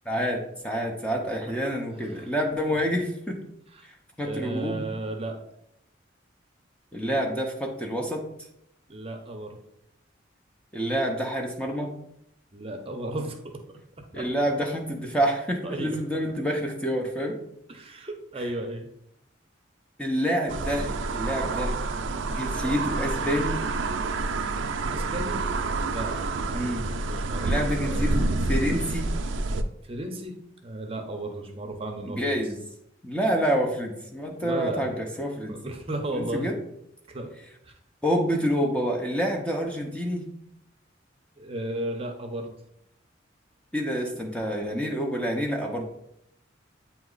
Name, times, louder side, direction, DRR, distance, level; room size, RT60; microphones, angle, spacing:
voice 1, 0.1-3.4 3.8-4.8 6.9-8.2 10.7-11.9 14.1-17.3 20.0-21.7 22.3-23.6 26.5-26.9 27.4-29.1 32.1-32.6 33.0-35.5 36.1-36.6 38.0-40.2 43.7-45.8, equal, 5° left, 1 dB, 0.6 m, -28 dB
voice 2, 4.2-5.4 8.9-9.6 12.5-13.4 14.1-14.2 15.6-16.0 17.7-18.9 24.9-25.4 25.9-26.2 27.1-28.0 29.9-30.4 30.6-32.4 34.4-34.9 35.5-36.5 37.1-37.3 37.7-37.8 41.4-42.5, right 1 dB, 30° right, 4 dB, 0.7 m, -34 dB
sound 1, 20.5-29.6, right 3 dB, 80° right, 0.4 m, -28 dB
8.2 x 2.9 x 3.9 m, 0.76 s
head